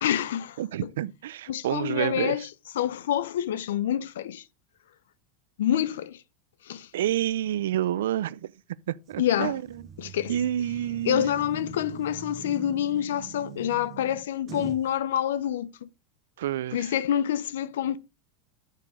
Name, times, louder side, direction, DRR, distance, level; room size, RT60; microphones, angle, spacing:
voice 1, 0.0-0.6 1.5-2.5 2.7-4.4 5.6-6.2 6.6-6.9 9.2-9.6 10.0-10.3 11.0-15.9 16.7-18.0, left 10 dB, 90° left, 0.7 m, -27 dB
voice 2, 0.6-2.4 6.9-8.5 8.9-9.6 10.0-11.3 16.4-16.9, right 12 dB, 85° right, 0.5 m, -29 dB
sound 1, 9.1-14.9, right 5 dB, 30° right, 1.3 m, -43 dB
9.0 x 6.6 x 4.9 m
supercardioid pair, 130°, 0 cm